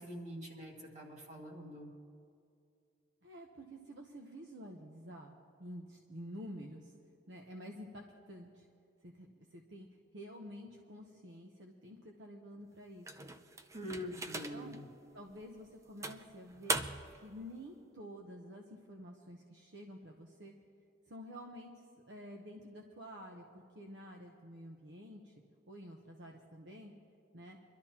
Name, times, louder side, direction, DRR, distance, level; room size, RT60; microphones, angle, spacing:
voice 1, 0.0-1.9 13.7-14.9, equal, 40° right, -1 dB, 2.1 m, -44 dB
voice 2, 3.2-6.9 7.3-8.7 9.0-9.9 10.1-13.3 13.9-14.1 14.5-14.8 15.1-16.8 17.1-20.5 21.1-25.3 25.7-26.9 27.3-27.6, equal, 65° right, 1 dB, 1.0 m, -50 dB
sound 1, 13.0-14.8 15.3-15.4 16.0-17.2, right 2 dB, 15° right, 0.5 m, -39 dB
24.0 x 12.5 x 2.9 m, 2.3 s
head